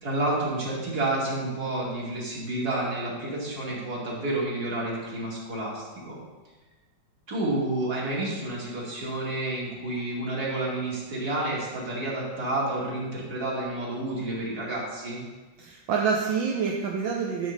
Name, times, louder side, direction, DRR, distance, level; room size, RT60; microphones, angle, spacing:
voice 1, 0.0-6.2 7.3-15.2, right 2 dB, 50° right, -5 dB, 3.0 m, -30 dB
voice 2, 15.6-17.5, right 6 dB, 75° right, -1 dB, 1.6 m, -27 dB
11.5 x 4.2 x 6.5 m, 1.2 s
omnidirectional pair, 2.2 m